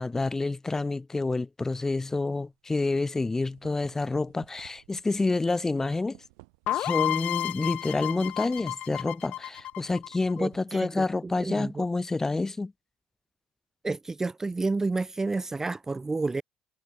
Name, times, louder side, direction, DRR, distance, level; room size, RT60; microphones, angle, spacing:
voice 1, 0.0-6.2 6.7-12.7, left 3 dB, 20° left, 1.0 m, -28 dB
sound 1, 2.5-2.7 3.2-11.6, right 30 dB, 90° right, 3.0 m, -58 dB
sound 2, 6.7-10.4, left 13 dB, 65° left, 0.8 m, -31 dB
voice 2, 10.4-11.9 13.8-16.4, right 3 dB, 20° right, 0.4 m, -30 dB
supercardioid pair, 85°, 3 cm